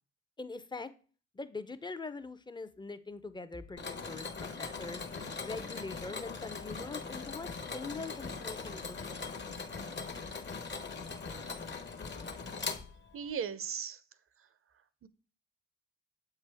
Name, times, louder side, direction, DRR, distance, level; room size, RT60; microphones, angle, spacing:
voice 1, 0.4-0.9 1.3-5.0 5.4-9.0 9.2-9.4, left 3 dB, 15° left, 0.6 m, -43 dB
Mechanisms, 3.8-13.3, left 4 dB, 40° left, 1.0 m, -41 dB
sound 1, 4.7-12.7, left 6 dB, 65° left, 1.0 m, -53 dB
voice 2, 13.1-14.0 14.4-14.5 15.0-15.1, right 7 dB, 50° right, 0.6 m, -37 dB
7.3 x 4.5 x 3.4 m
supercardioid pair, 50°, 29 cm